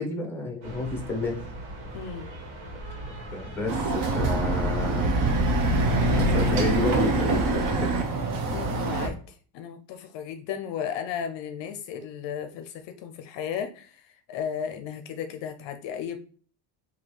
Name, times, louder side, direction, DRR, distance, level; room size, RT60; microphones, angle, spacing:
voice 1, 0.0-1.3 3.3-5.1 6.3-8.0, left 2 dB, 5° left, 2 dB, 0.8 m, -31 dB
sound 1, 0.6-6.2, right 1 dB, 65° right, 1.7 m, -36 dB
voice 2, 1.9-2.3 8.5-9.2 9.5-14.0 14.3-16.2, left 8 dB, 60° left, 7 dB, 0.6 m, -34 dB
Chatter / Car passing by / Motorcycle, 3.7-9.1, right 2 dB, 40° right, 0.8 m, -24 dB
4.2 x 2.8 x 3.1 m, 0.42 s
cardioid pair, 150°, 50 cm